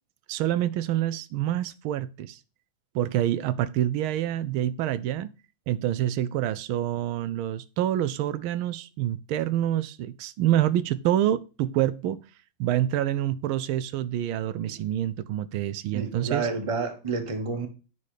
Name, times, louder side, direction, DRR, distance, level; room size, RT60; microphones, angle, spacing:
voice 1, 0.3-2.4 2.9-5.3 5.7-12.2 12.6-16.5, right 12 dB, 80° right, 1.4 m, -27 dB
voice 2, 15.9-17.7, right 4 dB, 20° right, 1.0 m, -30 dB
9.4 x 4.2 x 4.9 m
omnidirectional pair, 2.3 m